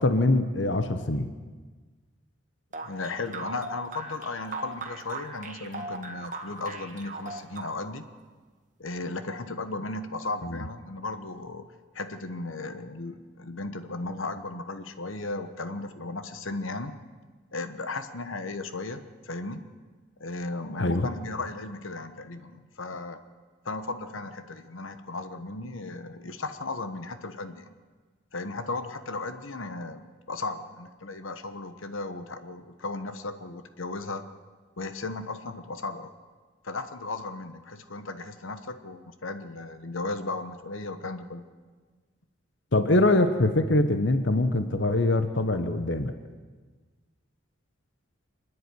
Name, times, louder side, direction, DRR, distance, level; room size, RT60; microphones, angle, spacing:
voice 1, 0.0-1.3 20.8-21.1 42.7-46.1, left 2 dB, 65° left, 9 dB, 1.1 m, -23 dB
sound 1, 2.7-8.0, right 3 dB, 40° right, 1.8 m, -39 dB
voice 2, 2.8-8.0 8.8-11.7 11.9-16.9 17.5-19.6 20.2-23.2 23.6-27.7 28.3-34.2 34.8-36.1 36.6-41.4, left 3 dB, 85° left, 10 dB, 1.2 m, -35 dB
26.5 x 10.0 x 9.7 m, 1.4 s
head